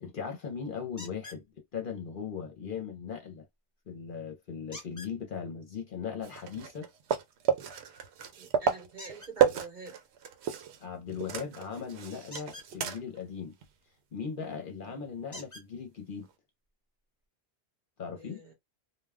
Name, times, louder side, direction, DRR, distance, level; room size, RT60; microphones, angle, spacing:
voice 1, 0.0-3.5 3.9-6.9 10.8-13.6 14.1-16.3 18.0-18.4, left 6 dB, 55° left, 0.8 m, -38 dB
sound 1, 1.0-1.4 4.7-5.1 9.0-9.3 12.2-12.7 14.4-14.5 15.3-15.7 16.7-16.8 17.2-17.3, left 1 dB, 20° left, 0.8 m, -46 dB
sound 2, 6.2-10.8 11.1-13.2 13.6-13.7 16.2-16.3, right 8 dB, 75° right, 0.8 m, -31 dB
voice 2, 8.4-10.0 14.8-15.0 18.2-18.5, right 4 dB, 45° right, 1.0 m, -46 dB
2.3 x 2.2 x 3.3 m
omnidirectional pair, 1.1 m